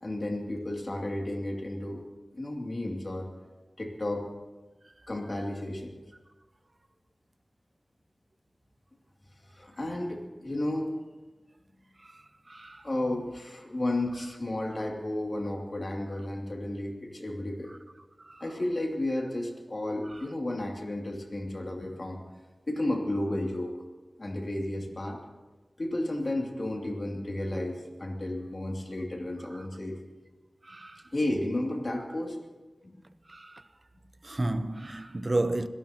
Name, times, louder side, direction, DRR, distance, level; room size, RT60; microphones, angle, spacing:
voice 1, 0.0-2.1 2.3-3.3 3.8-4.3 5.1-5.9 9.5-10.9 12.8-17.7 18.4-22.2 22.7-23.7 24.2-25.2 25.8-30.0 31.1-32.4 32.8-33.0, left 1 dB, 50° left, 2.8 m, -32 dB
voice 2, 12.5-12.8 18.3-18.4 30.7-31.0 33.3-33.6 34.2-35.7, right 2 dB, 45° right, 0.9 m, -31 dB
26.0 x 17.0 x 3.0 m
wide cardioid pair, 65°, 0 cm